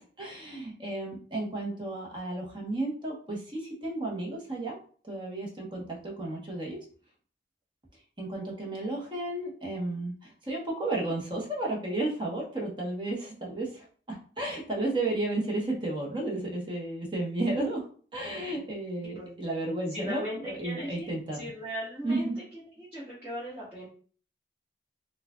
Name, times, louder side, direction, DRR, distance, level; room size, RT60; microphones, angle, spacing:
voice 1, 0.0-4.8 5.0-6.8 8.2-21.4 22.0-22.3, right 2 dB, 25° right, -2 dB, 1.0 m, -33 dB
voice 2, 19.0-19.4 19.9-23.9, equal, 10° right, -11 dB, 1.3 m, -39 dB
4.6 x 2.4 x 2.3 m, 0.42 s
head